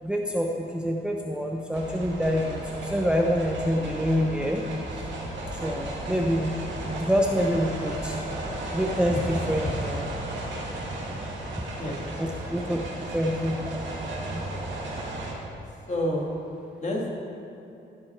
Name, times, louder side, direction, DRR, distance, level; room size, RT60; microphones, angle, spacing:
voice 1, 0.0-4.6 4.9-5.0 5.5-6.6 7.0-8.2 8.7-10.0 12.2-12.8 13.1-13.6 13.9-14.4, equal, 5° right, 0 dB, 0.7 m, -26 dB
sound 1, 1.7-15.3, right 1 dB, 75° right, 2.1 m, -35 dB
voice 2, 11.8-12.1 12.6-12.9 15.9-16.3 16.8-17.1, left 1 dB, 40° left, -2 dB, 2.2 m, -30 dB
15.5 x 6.0 x 4.5 m, 2.9 s
cardioid pair, 90°, 19 cm